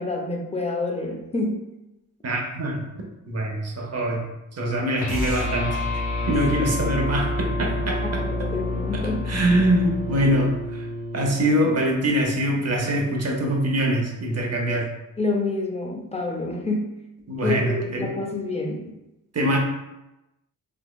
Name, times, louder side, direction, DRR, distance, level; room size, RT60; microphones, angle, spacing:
voice 1, 0.0-1.6 8.0-9.3 15.2-16.9 17.4-18.9, left 2 dB, 20° left, 1 dB, 0.5 m, -28 dB
voice 2, 2.2-2.8 3.3-4.2 4.5-5.8 6.3-8.5 9.3-10.9 11.1-14.9 17.3-18.1 19.3-19.6, right 1 dB, 45° right, 0 dB, 0.8 m, -23 dB
sound 1, 5.0-11.4, left 2 dB, 55° left, 0.8 m, -28 dB
3.5 x 2.9 x 2.3 m, 0.94 s
wide cardioid pair, 105°, 36 cm